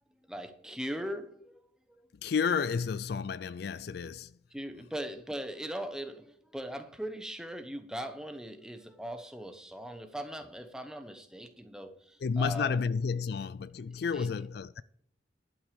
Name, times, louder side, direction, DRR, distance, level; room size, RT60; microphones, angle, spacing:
voice 1, 0.3-1.6 1.9-2.0 4.5-12.8 13.1-13.3 14.1-14.3, equal, 5° right, 1.0 m, -40 dB
voice 2, 2.2-4.4 12.2-14.8, left 5 dB, 55° left, 0.3 m, -31 dB
11.5 x 6.2 x 6.9 m
head